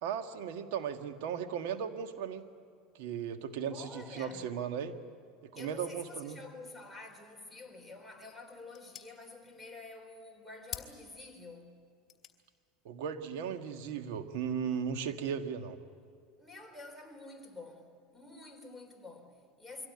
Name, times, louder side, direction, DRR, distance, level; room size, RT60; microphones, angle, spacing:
voice 1, 0.0-2.5 3.0-4.9 5.4-6.4 12.8-15.8, right 7 dB, 75° right, 1.6 m, -36 dB
voice 2, 3.7-4.6 5.5-11.8 16.4-19.9, left 3 dB, ahead, 4.2 m, -49 dB
sound 1, 7.7-14.5, left 10 dB, 35° left, 3.1 m, -52 dB
24.0 x 16.5 x 9.6 m
supercardioid pair, 100°, 0 cm